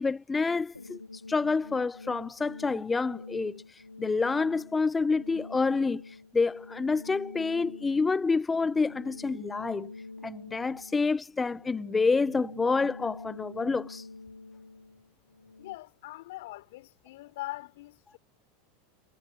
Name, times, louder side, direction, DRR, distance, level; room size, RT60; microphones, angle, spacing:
voice 1, 0.0-9.9 10.2-14.1, left 4 dB, 15° left, 0.7 m, -28 dB
sound 1, 0.7-15.8, left 3 dB, 90° left, 2.5 m, -46 dB
voice 2, 15.6-18.2, left 18 dB, 60° left, 4.3 m, -42 dB
figure-of-eight pair, 80°, 0 cm